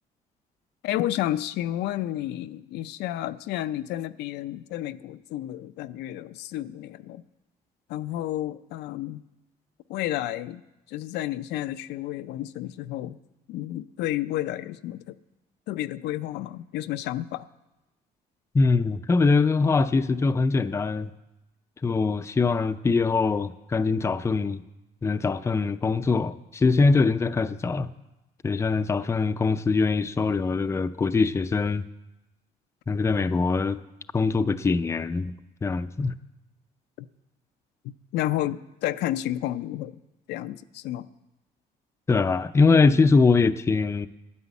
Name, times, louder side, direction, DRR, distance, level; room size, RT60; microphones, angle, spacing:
voice 1, 0.8-7.2 7.9-9.2 9.9-10.6 10.9-13.2 13.5-15.2 15.7-17.5 37.0-37.1 37.8-40.0 40.3-41.1, left 13 dB, 85° left, 11 dB, 0.5 m, -31 dB
voice 2, 18.5-21.1 21.8-24.6 25.0-27.9 28.4-31.8 32.9-33.8 34.1-35.3 35.6-36.1 42.1-44.1, left 4 dB, 15° left, 11 dB, 0.4 m, -22 dB
9.7 x 9.7 x 8.2 m, 0.99 s
cardioid pair, 110°, 17 cm